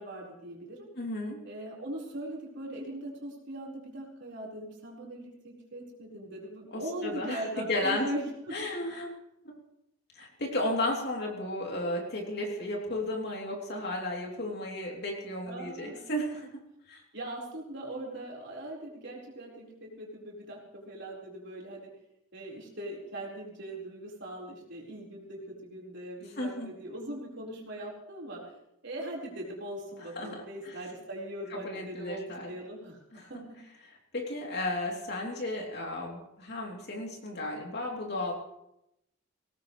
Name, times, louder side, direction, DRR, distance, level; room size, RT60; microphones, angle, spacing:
voice 1, 0.0-0.9 1.4-8.7 15.4-16.0 17.1-21.9 22.3-28.5 28.8-33.6, right 1 dB, 55° right, -3 dB, 4.5 m, -40 dB
voice 2, 1.0-1.4 6.7-8.1 8.5-9.1 10.1-16.5 16.9-17.0 26.4-26.7 30.1-30.8 31.5-32.5 33.1-33.3 33.8-38.3, left 1 dB, 50° left, 0 dB, 3.2 m, -34 dB
20.5 x 18.0 x 3.2 m, 0.84 s
head